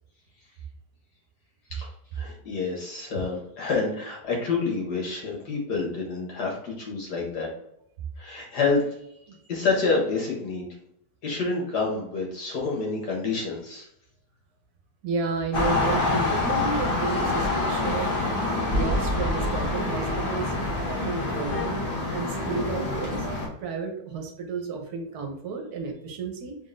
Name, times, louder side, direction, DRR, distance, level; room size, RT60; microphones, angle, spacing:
voice 1, 1.7-7.5 8.2-8.8 9.5-10.7 11.2-13.9, left 4 dB, 75° left, -2 dB, 1.8 m, -28 dB
voice 2, 15.0-18.2 18.7-20.5 20.9-23.3 23.6-26.6, right 4 dB, 70° right, 3 dB, 1.3 m, -32 dB
sound 1, 15.5-23.5, left 2 dB, 35° left, 1.2 m, -26 dB
3.7 x 3.5 x 2.5 m, 0.74 s
omnidirectional pair, 1.8 m